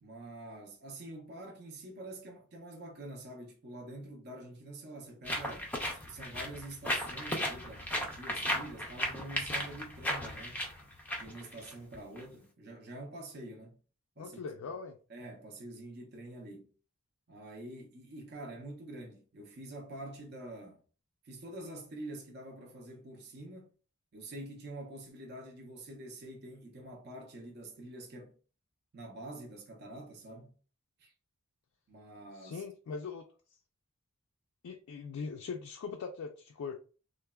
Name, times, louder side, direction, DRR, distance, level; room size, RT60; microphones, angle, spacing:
voice 1, 0.0-10.7 11.2-13.8 14.2-14.4 15.1-16.7 17.3-20.8 21.2-23.7 24.1-28.4 28.9-30.6 31.0-31.1 31.9-32.6, right 1 dB, 50° right, 0.6 m, -46 dB
sound 1, 5.2-12.2, left 1 dB, 10° left, 0.4 m, -36 dB
voice 2, 14.2-15.0 32.4-33.3 34.6-36.8, left 5 dB, 75° left, 0.3 m, -41 dB
3.2 x 2.1 x 2.2 m
head